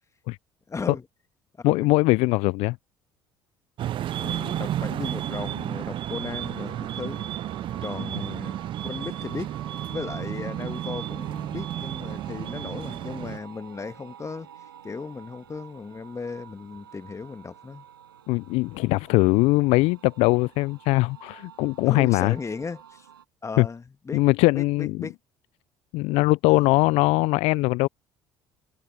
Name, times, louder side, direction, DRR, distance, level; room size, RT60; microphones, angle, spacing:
voice 1, 0.7-1.1 1.6-1.9 4.1-7.3 7.8-8.6 8.8-9.6 9.9-14.5 14.8-17.9 21.8-23.1 23.4-24.2 24.6-25.2 26.5-26.6, left 4 dB, 25° left, 1.6 m, -36 dB
voice 2, 1.6-2.8 18.3-22.3 23.6-23.7 24.1-25.0 25.9-27.9, left 23 dB, 65° left, 0.5 m, -21 dB
sound 1, 3.8-13.4, right 12 dB, 45° right, 0.4 m, -32 dB
sound 2, 6.4-23.2, right 9 dB, 85° right, 6.2 m, -48 dB
hypercardioid pair, 60°, 12 cm